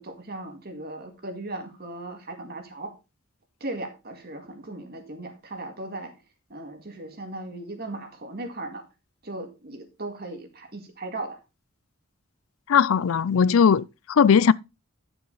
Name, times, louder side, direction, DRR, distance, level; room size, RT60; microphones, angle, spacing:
voice 1, 0.0-2.9 3.6-6.2 6.5-8.8 9.2-11.4, right 2 dB, 50° right, 2.1 m, -37 dB
voice 2, 12.7-14.5, left 7 dB, 75° left, 0.4 m, -19 dB
10.5 x 7.0 x 4.1 m
head